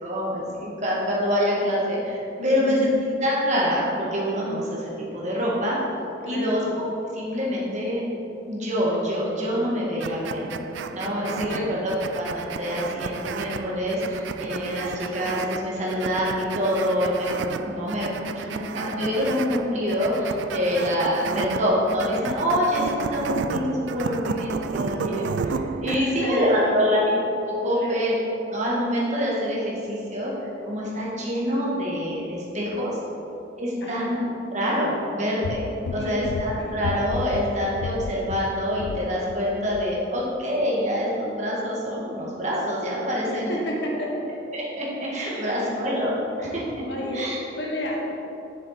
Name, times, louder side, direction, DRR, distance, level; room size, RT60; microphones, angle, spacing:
voice 1, 0.0-2.9 3.2-5.8 6.3-6.8 7.1-8.0 8.5-10.5 10.9-28.1 28.5-30.3 30.7-32.9 33.6-34.2 34.5-43.6 44.5-46.8 47.1-47.4, equal, 40° right, -5 dB, 1.8 m, -26 dB
voice 2, 2.4-2.8 6.2-6.6 11.2-11.6 25.8-26.9 27.7-28.0 33.8-34.1 35.9-36.3 36.6-36.7 43.3-44.3 45.2-45.7 46.8-48.0, equal, 70° left, -2 dB, 1.3 m, -32 dB
sound 1, 10.0-26.0, right 5 dB, 70° right, 0.3 m, -32 dB
sound 2, 35.4-39.4 39.7-39.9, left 4 dB, 90° left, 0.3 m, -33 dB
7.0 x 6.8 x 4.2 m, 2.9 s
head